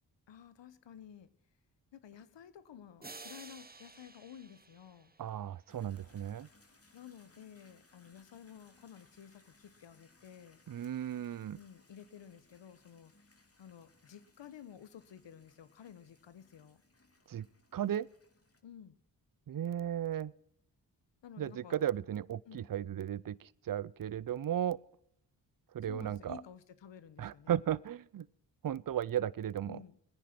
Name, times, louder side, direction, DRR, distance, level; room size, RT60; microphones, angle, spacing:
voice 1, 0.3-1.3 1.9-5.1 6.9-10.6 11.5-13.3 13.6-16.8 18.6-19.0 21.2-21.8 22.5-22.7 25.9-27.6 29.7-30.0, left 9 dB, 85° left, 15 dB, 1.2 m, -53 dB
sound 1, 3.0-5.7, right 3 dB, 20° right, 1.2 m, -52 dB
voice 2, 5.2-6.5 10.7-11.6 17.3-17.5 17.7-18.1 19.5-20.3 21.4-24.8 25.7-26.4 27.2-28.3 28.6-29.8, right 10 dB, 50° right, 22 dB, 0.6 m, -35 dB
sound 2, 5.7-18.6, left 2 dB, 30° left, 2.6 m, -67 dB
20.5 x 10.5 x 6.0 m, 0.73 s
cardioid pair, 45°, 43 cm